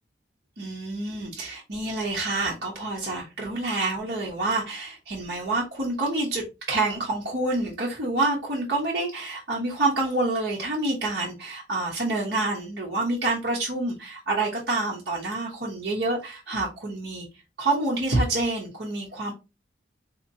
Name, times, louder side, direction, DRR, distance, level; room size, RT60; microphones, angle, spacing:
voice 1, 0.6-17.3 17.6-19.3, right 2 dB, 60° right, -4 dB, 0.9 m, -27 dB
3.6 x 2.8 x 2.7 m, 0.28 s
head